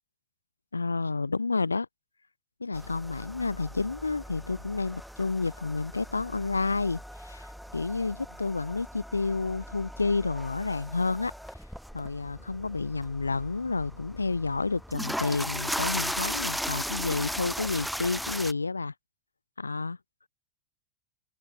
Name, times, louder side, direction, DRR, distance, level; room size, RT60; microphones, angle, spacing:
voice 1, 0.7-1.9 2.6-7.5 7.7-11.3 11.9-18.9 19.6-20.0, left 3 dB, 80° left, 0.8 m, -30 dB
sound 1, 2.7-18.5, equal, ahead, 3.1 m, -37 dB
open air
figure-of-eight pair, 90°, 0 cm